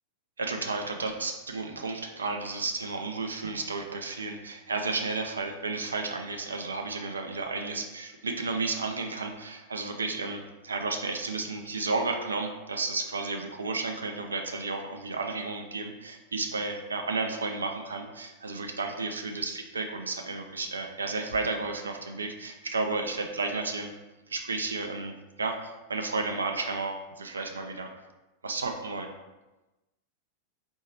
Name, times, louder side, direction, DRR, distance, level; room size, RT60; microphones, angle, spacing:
voice 1, 0.4-23.9 24.3-27.9 28.4-29.1, right 3 dB, 75° right, 4 dB, 0.4 m, -32 dB
4.4 x 2.7 x 4.3 m, 1.1 s
figure-of-eight pair, 90°, 0 cm